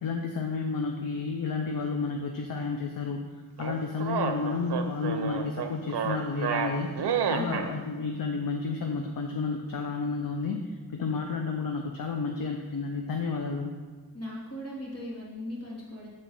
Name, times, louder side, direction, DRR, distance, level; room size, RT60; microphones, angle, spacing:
voice 1, 0.0-3.2 3.6-6.9 7.3-10.6 10.9-13.7, left 4 dB, 60° left, 3 dB, 0.6 m, -31 dB
sound 1, 3.6-7.7, right 6 dB, 90° right, 0.7 m, -30 dB
voice 2, 7.3-7.8 14.1-16.1, left 1 dB, 40° left, -5 dB, 2.3 m, -38 dB
7.6 x 3.7 x 5.4 m, 1.3 s
wide cardioid pair, 115°, 39 cm